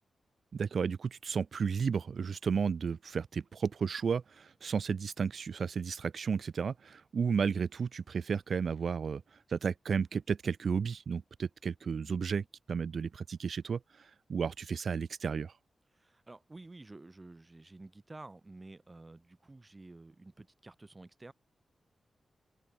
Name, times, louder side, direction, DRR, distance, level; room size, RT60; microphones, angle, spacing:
voice 1, 0.5-9.2 9.5-13.8 14.3-15.5, right 6 dB, 60° right, 1.1 m, -33 dB
voice 2, 15.9-21.3, right 2 dB, 25° right, 7.9 m, -51 dB
open air
wide cardioid pair, 110°, 0 cm